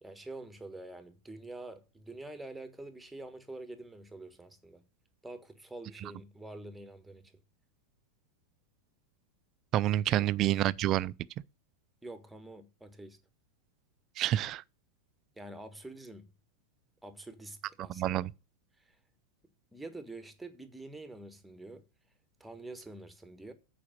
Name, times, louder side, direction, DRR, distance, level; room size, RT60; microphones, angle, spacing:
voice 1, 0.0-4.8 5.2-7.3 10.1-10.3 12.0-13.2 15.4-16.3 17.0-18.3 18.8-19.0 19.7-21.8 22.4-23.5, right 2 dB, 5° right, 1.4 m, -46 dB
voice 2, 9.7-11.1 14.2-14.6 17.9-18.3, right 13 dB, 35° right, 0.4 m, -28 dB
8.5 x 5.0 x 7.5 m
figure-of-eight pair, 90°, 0 cm